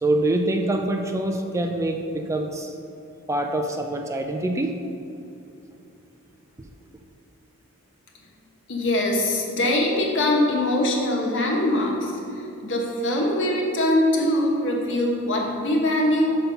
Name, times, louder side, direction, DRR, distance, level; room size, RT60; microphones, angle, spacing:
voice 1, 0.0-2.8 3.3-4.7, right 1 dB, 15° right, 3 dB, 0.4 m, -25 dB
voice 2, 8.7-16.3, left 1 dB, 60° left, 0 dB, 1.2 m, -22 dB
5.9 x 5.4 x 5.6 m, 2.6 s
head